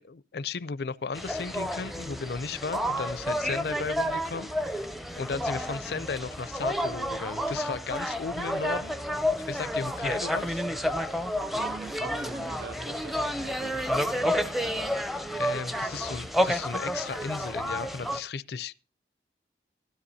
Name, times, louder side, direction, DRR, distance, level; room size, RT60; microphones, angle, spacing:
voice 1, 0.0-4.9 5.2-8.9 9.5-10.6 15.4-18.8, left 5 dB, 65° left, 0.5 m, -35 dB
sound 1, 1.1-18.2, equal, ahead, 0.5 m, -30 dB
voice 2, 11.5-15.1, right 4 dB, 65° right, 0.6 m, -45 dB
16.5 x 13.0 x 2.7 m
head